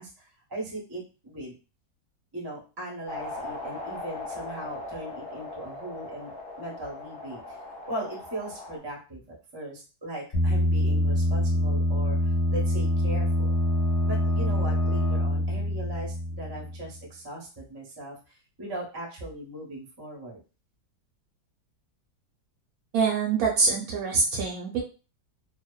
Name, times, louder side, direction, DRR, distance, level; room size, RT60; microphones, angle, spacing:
voice 1, 0.0-1.5 2.3-6.3 6.6-7.6 7.9-13.6 14.0-20.4, right 1 dB, 30° right, -3 dB, 0.4 m, -39 dB
sound 1, 3.1-8.8, left 2 dB, 65° left, 0.6 m, -39 dB
sound 2, 10.3-16.9, left 1 dB, 35° left, 1.1 m, -25 dB
voice 2, 22.9-24.8, right 4 dB, 70° right, 0 dB, 0.9 m, -25 dB
2.7 x 2.1 x 2.3 m, 0.34 s
omnidirectional pair, 1.8 m